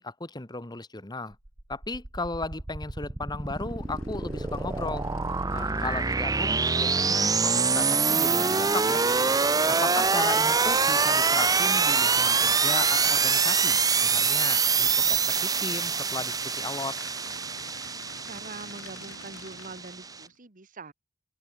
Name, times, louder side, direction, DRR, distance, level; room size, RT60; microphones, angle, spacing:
voice 1, 0.0-1.3 1.7-5.1 5.5-9.0 9.7-17.0, left 3 dB, 20° left, 1.4 m, -35 dB
sound 1, 1.5-20.2, right 5 dB, 20° right, 0.8 m, -25 dB
Aircraft / Idling, 3.4-20.4, left 4 dB, 75° left, 3.3 m, -49 dB
voice 2, 18.2-20.9, right 3 dB, 40° right, 1.5 m, -43 dB
open air
head